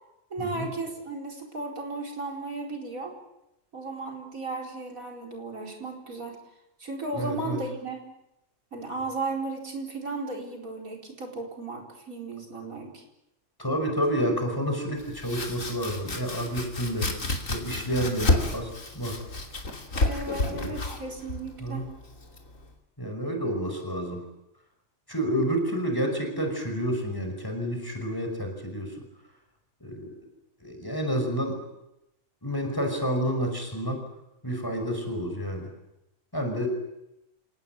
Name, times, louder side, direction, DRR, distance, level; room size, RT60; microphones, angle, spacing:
voice 1, 0.3-3.1 3.7-6.4 6.8-8.1 8.7-13.0 20.1-21.9, right 3 dB, 90° right, 1 dB, 5.0 m, -35 dB
voice 2, 7.1-7.6 13.6-17.1 17.5-19.2 20.4-20.7 21.6-21.9 23.0-24.2 25.1-29.0 29.8-30.1 30.6-31.5 32.4-34.0 34.4-35.7 36.3-36.7, equal, 15° left, 4 dB, 5.7 m, -29 dB
Domestic sounds home sounds, 15.0-22.7, left 2 dB, 70° left, 3.3 m, -31 dB
29.0 x 18.0 x 9.2 m, 0.89 s
omnidirectional pair, 1.4 m